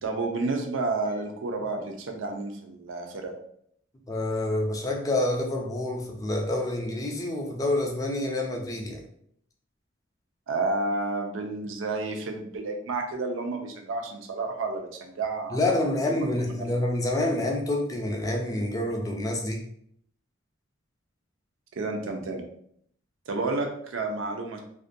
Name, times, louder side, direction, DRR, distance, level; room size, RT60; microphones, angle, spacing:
voice 1, 0.0-3.3 10.5-15.6 16.3-16.7 21.8-22.4 23.3-24.6, right 3 dB, 80° right, 3 dB, 0.5 m, -30 dB
voice 2, 4.1-9.0 15.5-19.6, left 1 dB, 20° left, 1 dB, 0.4 m, -27 dB
2.4 x 2.2 x 2.5 m, 0.68 s
head